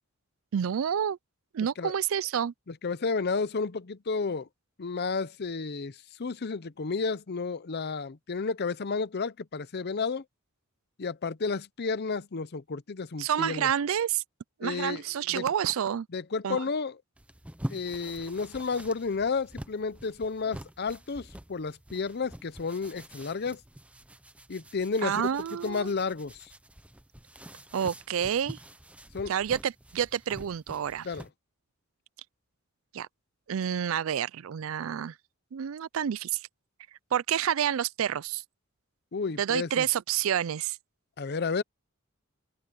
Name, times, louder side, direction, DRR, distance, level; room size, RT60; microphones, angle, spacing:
voice 1, 0.5-1.2 1.5-2.5 13.2-14.2 14.6-16.1 16.4-16.7 25.0-25.9 27.7-28.6 29.3-31.1 32.9-33.1 33.5-35.2 35.5-36.4 37.1-38.4 39.4-40.8, right 9 dB, 70° right, 0.4 m, -29 dB
voice 2, 2.8-4.5 4.8-10.2 11.0-13.7 14.6-15.0 15.3-15.5 16.1-17.0 17.7-23.6 24.5-25.1 25.6-26.4 29.1-29.3 31.0-31.3 39.1-39.8 41.2-41.6, left 4 dB, 50° left, 0.7 m, -32 dB
sound 1, 17.2-31.3, equal, 5° right, 0.8 m, -45 dB
open air
head